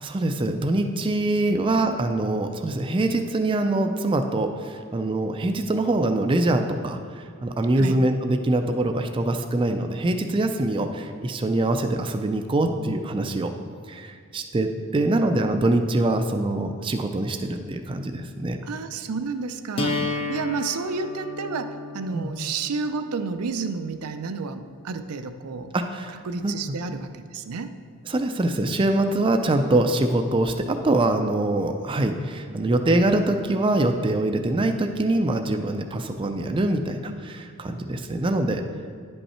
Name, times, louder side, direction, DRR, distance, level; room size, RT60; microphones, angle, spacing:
voice 1, 0.0-13.5 13.8-18.6 22.1-22.3 25.7-26.2 26.4-26.6 28.1-38.6, right 2 dB, 25° right, 6 dB, 0.3 m, -24 dB
voice 2, 1.5-2.0 7.8-8.0 18.6-25.7 26.2-27.7, right 4 dB, 90° right, 8 dB, 0.5 m, -31 dB
sound 1, 19.8-25.7, left 3 dB, 25° left, 0.5 m, -34 dB
10.0 x 5.4 x 4.3 m, 2.2 s
head